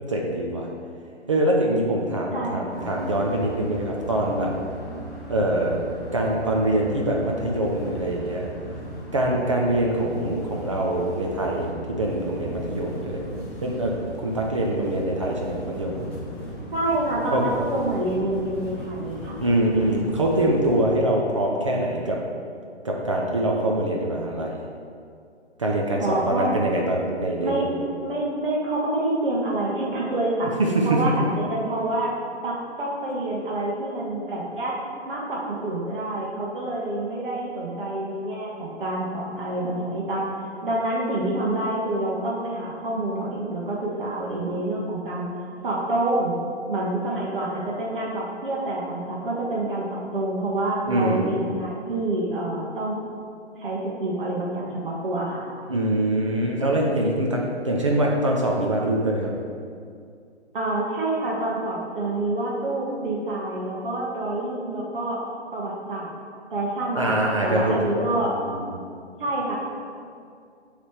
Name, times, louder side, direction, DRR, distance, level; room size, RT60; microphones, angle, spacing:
voice 1, 0.1-0.7 1.3-4.5 5.3-5.8 6.1-8.5 9.1-16.0 17.3-17.4 19.4-22.2 22.8-24.6 25.6-27.7 30.6-31.1 50.9-51.3 55.7-59.3 66.9-68.1 68.4-68.7, right 1 dB, 30° right, -2 dB, 0.4 m, -24 dB
voice 2, 2.3-2.9 16.7-19.4 26.0-26.5 27.4-27.7 28.0-30.5 30.8-32.1 32.4-34.7 35.0-40.2 40.6-45.3 45.6-46.3 46.7-53.0 53.6-55.5 60.5-65.2 65.5-66.1 66.5-68.3 69.2-69.6, right 2 dB, 50° right, -4 dB, 1.2 m, -27 dB
sound 1, 2.7-20.8, equal, 5° left, 1.0 m, -37 dB
5.9 x 3.3 x 5.8 m, 2.3 s
figure-of-eight pair, 140°, 35 cm